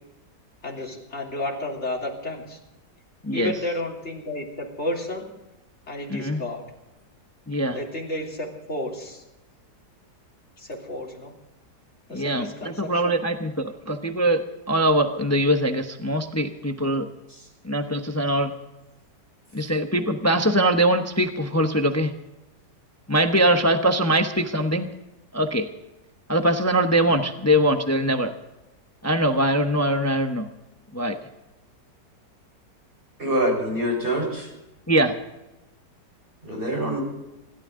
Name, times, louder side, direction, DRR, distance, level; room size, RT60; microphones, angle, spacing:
voice 1, 0.6-2.6 3.3-5.3 5.9-6.6 7.7-9.2 10.6-11.3 12.1-13.1, left 1 dB, 40° left, -2 dB, 3.6 m, -32 dB
voice 2, 6.1-6.4 7.5-7.8 12.1-17.1 17.6-18.5 19.5-22.1 23.1-24.9 25.3-25.7 26.3-28.3 29.0-30.5 30.9-31.2 34.9-35.1, right 1 dB, 15° left, 6 dB, 0.6 m, -22 dB
voice 3, 33.2-34.5 36.4-37.0, right 1 dB, 30° right, 2 dB, 5.2 m, -25 dB
28.0 x 13.0 x 3.8 m, 0.98 s
omnidirectional pair, 1.9 m